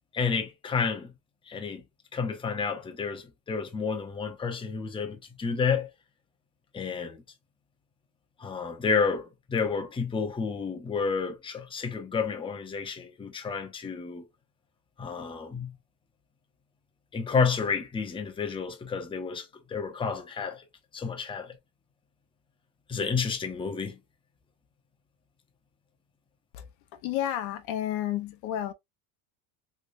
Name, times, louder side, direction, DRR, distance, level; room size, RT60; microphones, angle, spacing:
voice 1, 0.1-1.1 1.5-1.8 2.1-5.9 6.7-7.2 8.4-14.3 15.0-15.8 17.1-20.6 20.9-21.6 22.9-24.0, left 5 dB, 15° left, 0.7 m, -30 dB
voice 2, 27.0-28.7, left 11 dB, 65° left, 0.8 m, -31 dB
3.2 x 3.2 x 2.5 m
cardioid pair, 130°, 38 cm